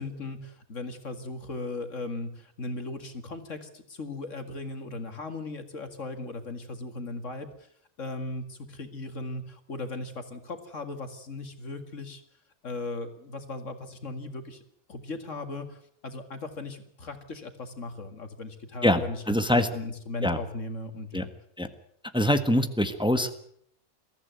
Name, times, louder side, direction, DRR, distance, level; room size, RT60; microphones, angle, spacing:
voice 1, 0.0-7.7 8.0-12.2 12.6-14.6 14.9-19.2 19.5-21.3, left 2 dB, 60° left, 7 dB, 2.4 m, -37 dB
voice 2, 18.8-19.7 20.2-20.4 21.1-21.2 21.6-21.7 22.1-23.3, left 1 dB, 5° right, 9 dB, 1.4 m, -24 dB
22.5 x 15.0 x 9.2 m, 0.67 s
omnidirectional pair, 1.5 m